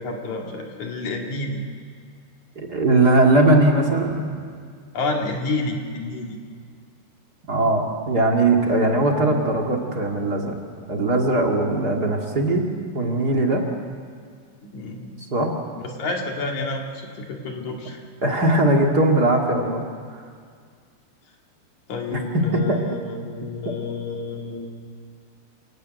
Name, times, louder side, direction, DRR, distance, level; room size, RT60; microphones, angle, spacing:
voice 1, 0.0-1.6 4.9-6.4 14.6-15.1 15.8-18.0 21.9-24.7, left 3 dB, 50° left, 1 dB, 3.2 m, -29 dB
voice 2, 2.5-4.4 7.5-10.5 10.9-12.6 12.9-13.6 15.3-15.5 18.2-19.8 22.1-22.8, right 2 dB, 40° right, 1 dB, 1.5 m, -20 dB
28.5 x 16.5 x 9.3 m, 2.1 s
omnidirectional pair, 4.9 m